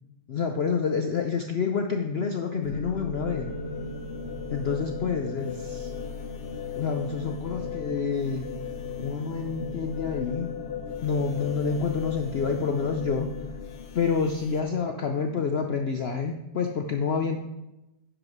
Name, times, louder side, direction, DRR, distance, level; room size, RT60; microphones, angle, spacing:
voice 1, 0.3-3.5 4.5-5.9 6.8-8.5 9.0-10.5 11.0-13.3 13.9-17.4, left 5 dB, 65° left, 4 dB, 0.6 m, -28 dB
sound 1, 2.6-14.6, left 5 dB, 50° left, 0.9 m, -36 dB
10.0 x 5.0 x 6.0 m, 0.97 s
omnidirectional pair, 1.8 m